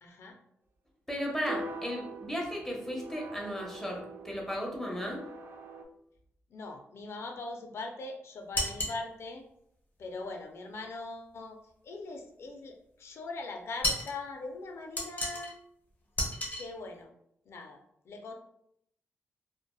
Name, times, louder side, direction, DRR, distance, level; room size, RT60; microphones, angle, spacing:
voice 1, 0.0-0.4 6.5-9.4 10.0-11.6 11.8-15.5 16.6-17.1 17.5-18.3, left 3 dB, 65° left, 3 dB, 0.4 m, -41 dB
voice 2, 1.1-5.2, equal, 5° left, -1 dB, 0.7 m, -35 dB
sound 1, 1.5-5.9, right 2 dB, 55° right, 0.3 m, -43 dB
sound 2, 8.5-9.0 13.8-14.2 15.0-15.5 16.2-16.7, left 1 dB, 40° left, 0.8 m, -32 dB
2.6 x 2.2 x 2.3 m, 0.74 s
cardioid pair, 80°, 5 cm